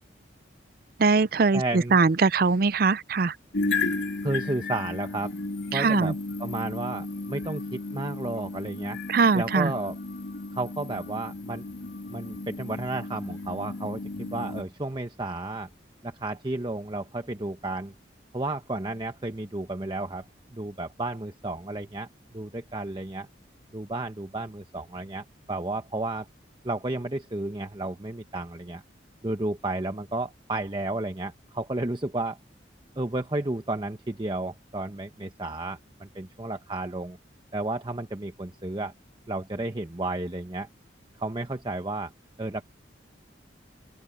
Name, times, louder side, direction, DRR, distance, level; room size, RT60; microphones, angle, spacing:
voice 1, 1.0-3.4 5.7-6.1 9.1-9.7, right 4 dB, 50° right, 0.5 m, -22 dB
voice 2, 1.5-2.0 4.2-5.3 5.7-6.1 6.4-9.0 9.3-10.0 10.5-11.6 12.1-15.7 16.0-17.9 18.3-20.3 20.5-22.1 22.3-23.3 23.7-26.3 26.6-28.8 29.2-32.4 33.0-37.2 37.5-38.9 39.3-40.7 41.2-42.1 42.4-42.6, right 2 dB, 25° right, 0.9 m, -32 dB
sound 1, 3.5-14.6, left 3 dB, 75° left, 2.7 m, -34 dB
head